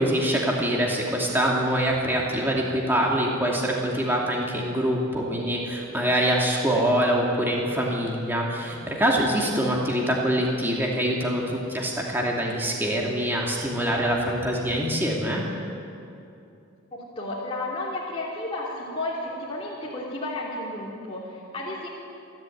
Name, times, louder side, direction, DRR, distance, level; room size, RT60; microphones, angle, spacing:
voice 1, 0.0-15.4, equal, 10° right, -2 dB, 2.6 m, -24 dB
voice 2, 16.9-21.9, left 2 dB, 25° left, -6 dB, 3.1 m, -32 dB
28.0 x 12.0 x 8.9 m, 2.6 s
head